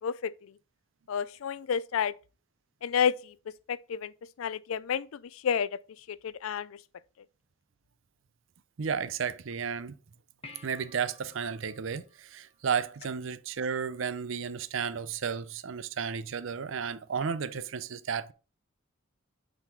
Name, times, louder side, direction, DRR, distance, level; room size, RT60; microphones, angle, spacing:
voice 1, 0.0-0.3 1.1-2.1 2.8-3.3 3.7-4.1 4.4-5.7 6.1-6.8, left 7 dB, 85° left, 0.4 m, -30 dB
voice 2, 8.8-9.9 10.6-18.3, right 6 dB, 70° right, 0.5 m, -33 dB
sound 1, 10.4-13.1 17.2-17.3, left 3 dB, 30° left, 1.1 m, -53 dB
8.9 x 4.1 x 4.5 m
head